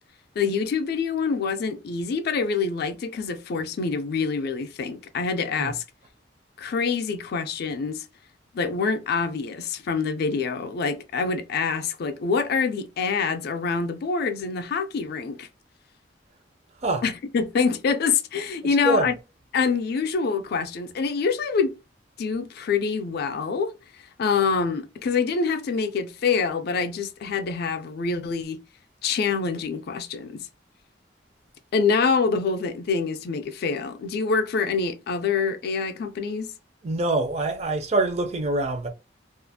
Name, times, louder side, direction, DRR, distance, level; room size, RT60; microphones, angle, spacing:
voice 1, 0.4-5.8 6.6-8.0 8.5-15.5 17.0-19.1 19.5-21.7 22.2-23.7 24.2-28.6 29.0-30.5 31.7-36.5, left 5 dB, 60° left, 0.4 m, -26 dB
voice 2, 36.8-38.9, right 2 dB, 35° right, 0.5 m, -24 dB
2.4 x 2.3 x 2.6 m
head